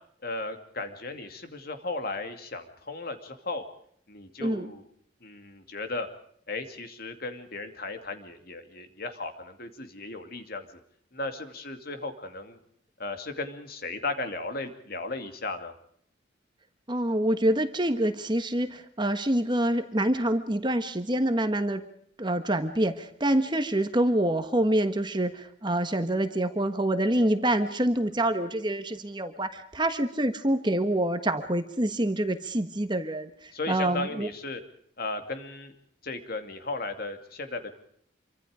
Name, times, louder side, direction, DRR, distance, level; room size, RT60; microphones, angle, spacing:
voice 1, 0.2-3.7 4.1-4.8 5.2-6.1 6.5-10.8 11.1-12.6 13.0-15.7 33.5-34.6 35.0-35.7 36.0-37.7, left 3 dB, 50° left, 7 dB, 2.5 m, -35 dB
voice 2, 4.4-4.7 16.9-21.8 22.2-34.3, right 1 dB, 25° right, 8 dB, 1.4 m, -26 dB
27.0 x 24.5 x 5.0 m, 0.65 s
head